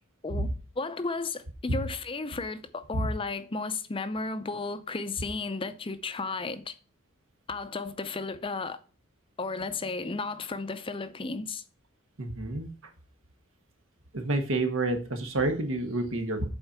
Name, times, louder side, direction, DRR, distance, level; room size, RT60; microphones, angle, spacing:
voice 1, 0.8-6.8 7.5-8.8 9.4-11.6, left 3 dB, 25° left, 0.5 m, -34 dB
voice 2, 12.2-12.7 14.1-16.5, right 2 dB, 75° right, 1.6 m, -29 dB
7.9 x 4.5 x 5.7 m
head